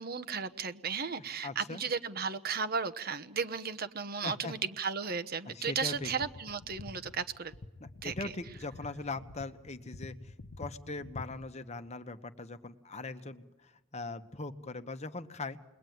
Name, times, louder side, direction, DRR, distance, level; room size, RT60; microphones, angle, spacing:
voice 1, 0.0-7.5 8.0-8.3, right 5 dB, 50° right, 12 dB, 1.0 m, -35 dB
voice 2, 1.4-1.8 4.2-4.5 5.5-6.1 7.8-15.6, left 3 dB, 35° left, 10 dB, 1.1 m, -41 dB
sound 1, 5.9-11.5, left 2 dB, 70° left, 0.9 m, -48 dB
30.0 x 21.5 x 9.4 m, 1.0 s
head